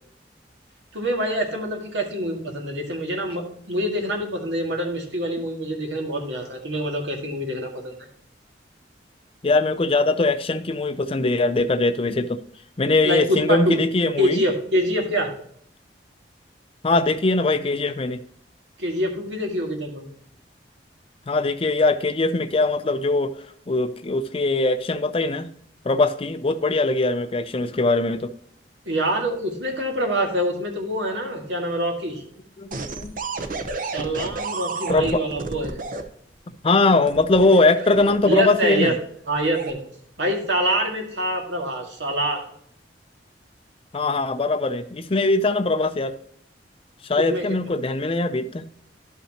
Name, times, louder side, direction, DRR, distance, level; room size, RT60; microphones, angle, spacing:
voice 1, 0.9-8.0 13.0-13.8 14.2-15.3 18.8-20.1 28.9-32.2 33.8-35.8 38.3-38.9 39.3-39.8 40.2-42.4 47.1-47.4, equal, 85° right, 1 dB, 2.0 m, -25 dB
voice 2, 9.4-12.4 12.8-14.4 16.8-18.2 21.3-23.3 23.7-25.5 25.8-28.3 32.6-32.7 33.0-33.1 34.9-35.2 36.6-38.9 43.9-46.2 47.0-48.6, left 2 dB, 30° left, 11 dB, 0.5 m, -21 dB
sound 1, 32.7-36.0 37.1-38.7 39.4-39.7, right 3 dB, 50° right, 0.8 m, -31 dB
11.5 x 5.7 x 2.9 m, 0.65 s
head